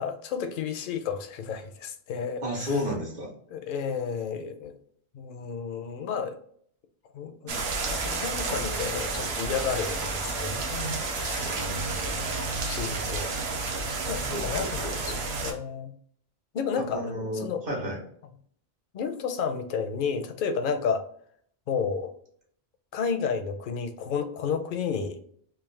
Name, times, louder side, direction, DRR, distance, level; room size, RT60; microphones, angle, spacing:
voice 1, 0.0-2.7 3.5-4.7 5.1-6.4 7.1-12.0 12.6-15.2 15.4-15.9 16.5-17.6 18.9-21.1 21.7-22.1 22.9-25.2, left 6 dB, 60° left, 8 dB, 0.6 m, -32 dB
voice 2, 2.4-3.3 7.4-7.6 11.3-12.5 14.3-15.1 16.9-18.0, left 1 dB, 55° right, -1 dB, 1.3 m, -33 dB
sound 1, 7.5-15.5, right 3 dB, 80° right, 0.9 m, -31 dB
3.6 x 2.6 x 3.1 m, 0.62 s
omnidirectional pair, 1.1 m